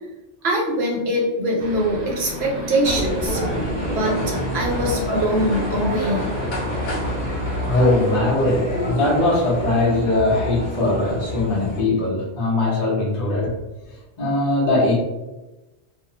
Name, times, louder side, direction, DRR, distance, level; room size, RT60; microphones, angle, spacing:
voice 1, 0.4-3.4 3.9-6.3, right 1 dB, 70° right, -2 dB, 0.9 m, -23 dB
sound 1, 1.6-8.3, equal, 50° right, 0.5 m, -34 dB
sound 2, 2.8-11.8, left 1 dB, 70° left, 1.0 m, -27 dB
voice 2, 7.6-13.5 14.2-14.9, left 2 dB, 45° left, -5 dB, 0.8 m, -20 dB
2.6 x 2.0 x 2.7 m, 1.1 s
omnidirectional pair, 1.1 m